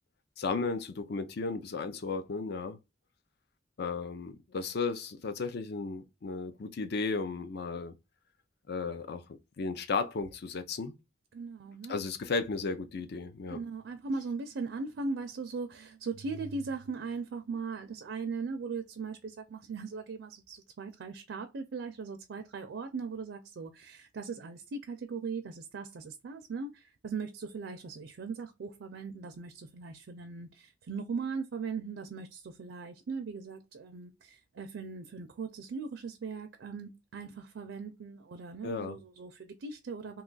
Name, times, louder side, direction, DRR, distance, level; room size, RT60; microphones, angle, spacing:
voice 1, 0.4-2.8 3.8-7.9 8.7-9.2 9.6-10.9 11.9-13.6 38.6-39.0, left 4 dB, 60° left, 0.5 m, -34 dB
voice 2, 11.3-12.0 13.5-40.2, right 4 dB, 70° right, 0.4 m, -39 dB
2.8 x 2.3 x 3.8 m
head